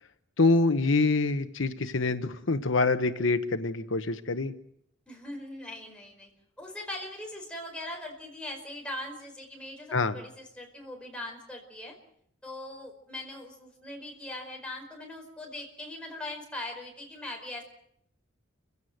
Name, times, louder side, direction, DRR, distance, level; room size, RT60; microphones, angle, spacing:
voice 1, 0.4-4.5 9.9-10.1, left 3 dB, 75° left, 10 dB, 1.0 m, -25 dB
voice 2, 5.1-6.3 6.6-11.9 12.4-17.6, left 1 dB, 5° left, 0 dB, 4.9 m, -40 dB
29.0 x 16.5 x 7.9 m, 0.72 s
head